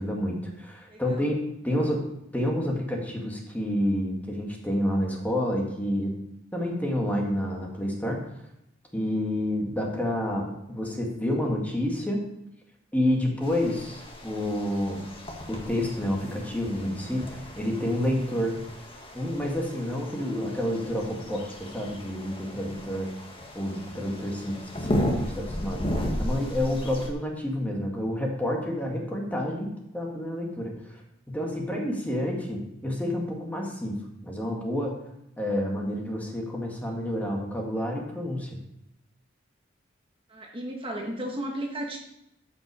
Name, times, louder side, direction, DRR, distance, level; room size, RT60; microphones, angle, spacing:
voice 1, 0.0-1.4 1.6-2.1 2.3-6.1 6.5-8.2 8.9-12.3 12.9-15.0 15.5-18.6 19.1-23.1 23.5-31.0 31.3-34.0 34.2-35.0 35.4-38.5, left 1 dB, 10° left, -1 dB, 1.9 m, -29 dB
voice 2, 0.9-1.3 1.6-2.0 40.3-42.0, right 1 dB, 25° right, 0 dB, 1.3 m, -35 dB
sound 1, 13.4-27.1, equal, 25° left, 1.6 m, -35 dB
13.5 x 6.0 x 4.8 m, 0.81 s
head